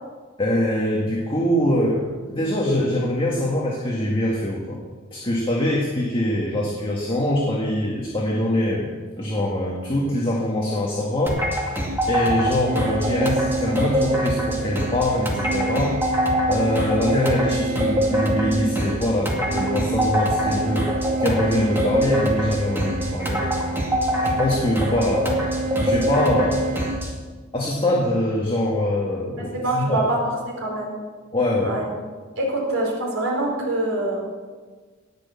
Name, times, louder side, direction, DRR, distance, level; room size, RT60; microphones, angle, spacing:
voice 1, 0.4-4.8 5.1-8.9 9.2-11.4 12.1-15.9 16.5-20.9 21.2-23.5 24.2-26.7 27.5-30.1 31.3-31.8, left 1 dB, 25° left, -3 dB, 1.9 m, -23 dB
sound 1, 11.3-27.1, equal, 10° right, 2.2 m, -25 dB
sound 2, 12.7-26.9, right 3 dB, 45° right, 0.5 m, -29 dB
voice 2, 29.5-30.2 30.6-30.9 31.6-31.9 32.4-34.2, right 2 dB, 85° right, -2 dB, 4.6 m, -24 dB
18.5 x 6.5 x 7.2 m, 1.4 s
head